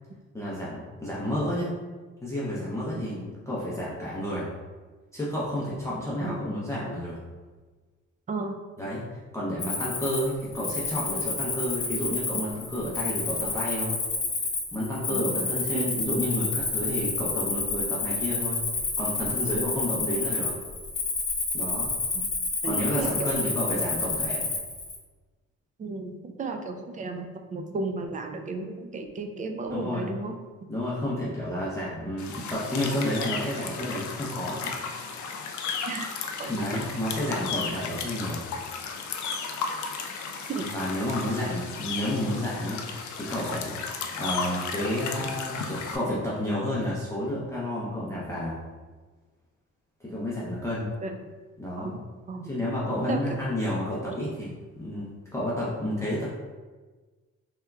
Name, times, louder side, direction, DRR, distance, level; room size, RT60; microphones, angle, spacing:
voice 1, 0.3-1.7 2.2-4.5 5.1-7.2 8.8-14.0 14.7-18.6 19.0-20.5 21.5-21.9 22.6-24.5 29.7-30.1 30.7-34.7 36.5-38.5 40.6-43.8 44.2-48.6 50.0-50.9 51.6-51.9 52.4-56.2, left 1 dB, 10° left, -8 dB, 0.6 m, -31 dB
Cricket, 9.6-25.0, left 3 dB, 45° left, 1.0 m, -30 dB
voice 2, 22.6-23.4 25.8-30.3 35.9-36.1 36.4-36.8 40.5-40.7 51.0-51.2 51.8-51.9 52.3-52.5 53.1-53.2, right 3 dB, 25° right, 4 dB, 0.3 m, -34 dB
sound 1, 32.2-46.0, left 5 dB, 70° left, 0.5 m, -34 dB
3.4 x 2.9 x 2.3 m, 1.3 s
cardioid pair, 90°, 30 cm